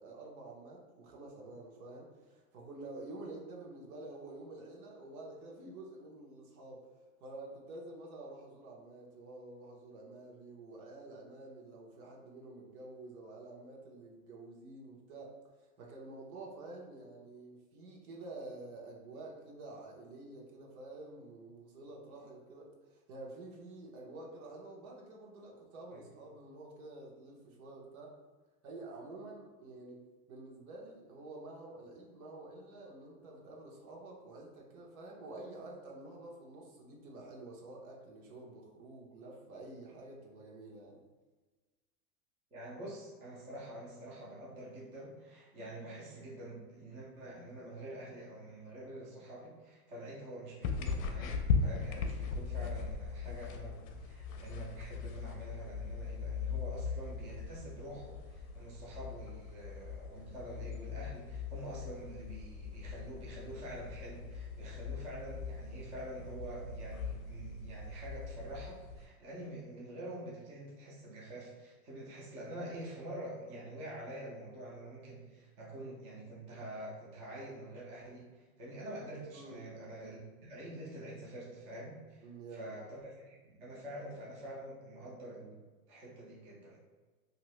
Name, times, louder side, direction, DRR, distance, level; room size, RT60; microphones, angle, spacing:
voice 1, 0.0-6.9 7.2-15.4 15.8-28.1 28.6-30.0 30.3-41.0 79.3-79.7 82.2-82.7, right 2 dB, 75° right, -2 dB, 1.1 m, -49 dB
voice 2, 42.5-82.3 82.5-86.8, right 1 dB, 15° right, -5 dB, 0.4 m, -46 dB
sound 1, 50.6-69.1, left 5 dB, 65° left, 0.6 m, -39 dB
2.7 x 2.7 x 3.1 m, 1.3 s
supercardioid pair, 145°, 43 cm